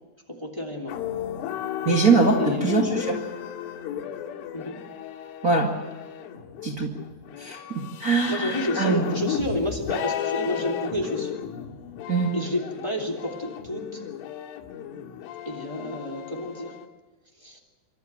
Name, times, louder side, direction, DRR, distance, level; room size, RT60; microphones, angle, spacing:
voice 1, 0.3-0.9 2.4-2.7 4.5-4.8 8.3-11.4 12.3-14.0 15.4-16.7 17.4-17.6, left 1 dB, 10° left, 1 dB, 1.8 m, -30 dB
sound 1, 0.9-16.9, left 9 dB, 90° left, 4.3 m, -34 dB
voice 2, 1.8-3.2 5.4-5.7 6.6-6.9 7.4-9.0 12.1-12.3, right 4 dB, 80° right, -2 dB, 0.8 m, -22 dB
28.5 x 13.0 x 8.9 m, 1.2 s
omnidirectional pair, 5.6 m